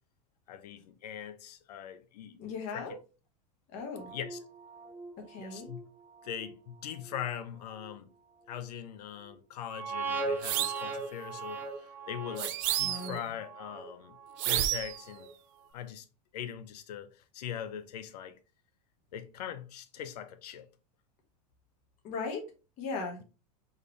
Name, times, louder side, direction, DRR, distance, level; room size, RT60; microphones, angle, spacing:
voice 1, 0.5-2.9 4.1-4.4 5.4-5.9 6.2-8.1 8.5-14.2 14.4-15.3 15.7-16.1 16.3-18.4 19.1-20.7, left 9 dB, 85° left, 0.7 m, -41 dB
voice 2, 2.4-3.0 3.7-4.1 5.2-5.7 12.8-13.3 22.0-22.5 22.8-23.2, left 4 dB, 40° left, 1.4 m, -38 dB
sound 1, 4.0-5.1 5.6-5.8 6.3-6.5 7.1-7.2 7.9-8.0 9.6-15.3 15.6-15.7, right 4 dB, 10° right, 0.6 m, -40 dB
sound 2, 10.4-10.9 12.4-13.2 14.4-15.0, right 12 dB, 50° right, 0.5 m, -30 dB
4.8 x 3.2 x 3.2 m
supercardioid pair, 155°, 20 cm